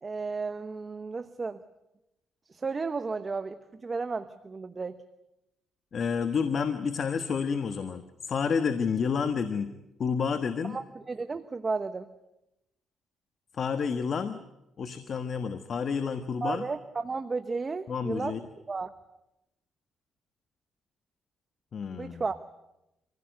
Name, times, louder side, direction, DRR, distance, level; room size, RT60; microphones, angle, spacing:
voice 1, 0.0-1.6 2.5-5.0 10.6-12.1 16.4-18.4 18.7-18.9 22.0-22.4, right 4 dB, 30° right, 10 dB, 1.0 m, -33 dB
voice 2, 5.9-9.7 10.0-10.8 13.5-14.4 14.8-16.6 17.9-18.4 21.7-22.2, left 6 dB, 50° left, 9 dB, 1.4 m, -29 dB
26.0 x 16.5 x 9.2 m, 0.91 s
cardioid pair, 90°, 0 cm